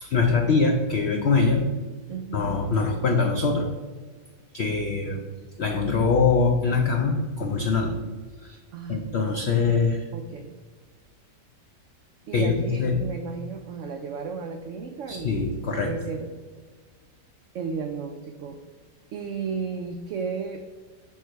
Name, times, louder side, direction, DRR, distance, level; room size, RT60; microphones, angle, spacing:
voice 1, 0.0-1.6 2.3-3.7 4.5-5.2 5.6-7.9 8.4-8.6 8.9-10.1 12.3-13.0 15.1-15.9, left 4 dB, 85° left, 3 dB, 0.5 m, -23 dB
voice 2, 2.1-2.6 8.7-9.5 10.1-10.5 12.3-15.5 15.8-16.4 17.5-18.6 19.1-20.6, right 5 dB, 85° right, 6 dB, 0.6 m, -34 dB
6.1 x 4.6 x 4.5 m, 1.5 s
omnidirectional pair, 1.8 m